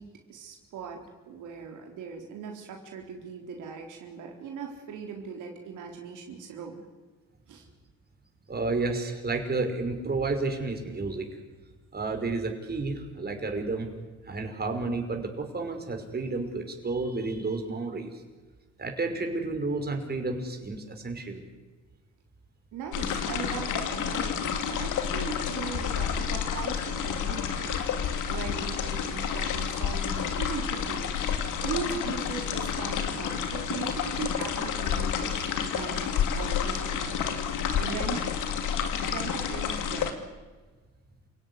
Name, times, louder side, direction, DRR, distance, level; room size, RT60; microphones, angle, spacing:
voice 1, 0.0-6.8 7.5-7.7 22.7-37.5 37.8-38.2 39.0-40.1, right 6 dB, 85° right, 2 dB, 4.1 m, -39 dB
voice 2, 8.5-11.3 11.9-13.9 14.3-18.2 18.8-21.4, right 3 dB, 30° right, 4 dB, 5.4 m, -31 dB
sound 1, 22.9-40.1, left 7 dB, 85° left, 2.7 m, -30 dB
28.5 x 17.5 x 9.9 m, 1.3 s
cardioid pair, 90°, 30 cm